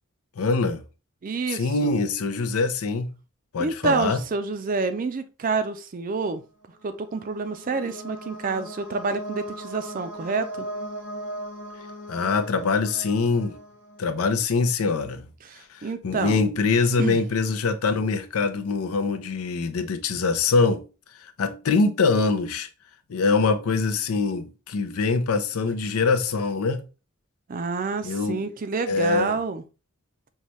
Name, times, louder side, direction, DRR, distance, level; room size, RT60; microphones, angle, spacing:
voice 1, 0.4-0.8 1.5-3.1 3.5-4.2 12.1-13.6 14.0-15.2 15.7-20.9 21.2-22.7 23.1-26.8 28.0-28.5 28.9-29.3, left 4 dB, 85° left, 0.5 m, -24 dB
voice 2, 1.2-1.9 3.6-6.4 6.8-10.7 15.4-16.4 17.0-17.2 27.5-29.6, right 4 dB, 40° right, 0.4 m, -28 dB
sound 1, 6.7-14.4, right 1 dB, 60° left, 1.0 m, -38 dB
5.5 x 2.2 x 3.0 m
head